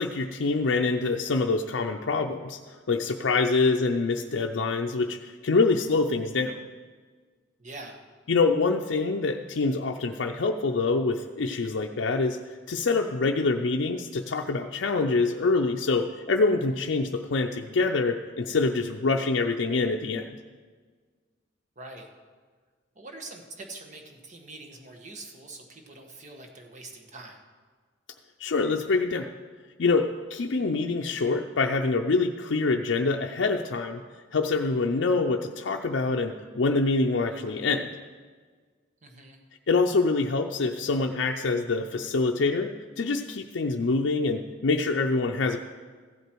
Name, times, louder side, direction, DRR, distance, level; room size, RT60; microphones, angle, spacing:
voice 1, 0.0-6.6 8.3-12.4 12.7-20.3 28.4-29.3 29.8-34.0 34.3-37.9 39.7-42.7 43.0-45.6, left 3 dB, 80° left, 2 dB, 0.5 m, -25 dB
voice 2, 7.6-8.0 21.8-22.1 22.9-27.4 39.0-39.4, right 2 dB, 40° right, 3 dB, 1.5 m, -44 dB
15.0 x 8.1 x 4.6 m, 1.5 s
head